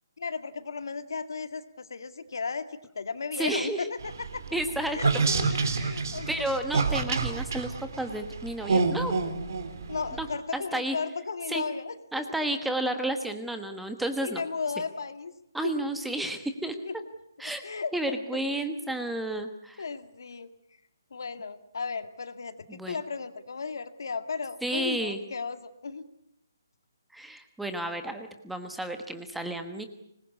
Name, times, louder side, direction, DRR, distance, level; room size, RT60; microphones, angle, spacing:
voice 1, 0.2-4.4 4.9-6.5 9.9-11.9 14.2-15.3 15.6-15.7 16.8-16.9 17.6-17.9 18.3-18.7 19.8-20.5 21.1-26.1, left 5 dB, 70° left, 10 dB, 2.1 m, -35 dB
voice 2, 3.4-3.9 4.5-5.3 5.6-6.0 6.3-9.1 10.2-10.3 10.5-11.0 11.5-11.6 12.1-14.4 15.5-16.8 17.4-17.6 17.9-19.8 22.7-23.0 24.6-25.2 27.1-29.9, right 1 dB, ahead, 7 dB, 1.2 m, -32 dB
sound 1, 4.0-10.4, right 4 dB, 55° right, 3.4 m, -28 dB
25.0 x 20.5 x 8.4 m, 0.79 s
hypercardioid pair, 170°, 2 cm